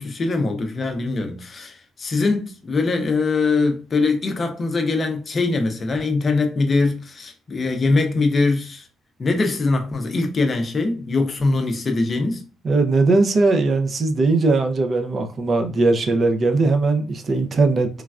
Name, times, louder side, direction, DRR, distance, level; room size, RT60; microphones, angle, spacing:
voice 1, 0.0-8.9 9.2-12.4, left 3 dB, 35° left, 0.5 m, -22 dB
voice 2, 12.6-17.9, right 3 dB, 40° right, 0.5 m, -19 dB
3.1 x 2.3 x 2.4 m
cardioid pair, 120°, 0 cm